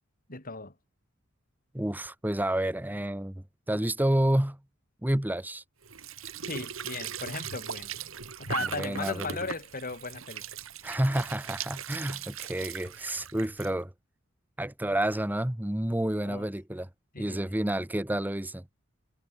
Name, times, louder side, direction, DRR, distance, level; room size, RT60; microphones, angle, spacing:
voice 1, 0.3-0.7 6.4-7.9 8.4-10.4 16.2-16.5 17.1-17.4, left 3 dB, 45° left, 7.8 m, -37 dB
voice 2, 1.7-4.6 5.0-5.6 8.6-9.4 10.8-13.9 14.6-16.9 17.2-18.6, right 1 dB, 10° right, 0.9 m, -29 dB
Squeak / Sink (filling or washing) / Trickle dribble, 5.8-13.7, right 7 dB, 75° right, 2.7 m, -39 dB
head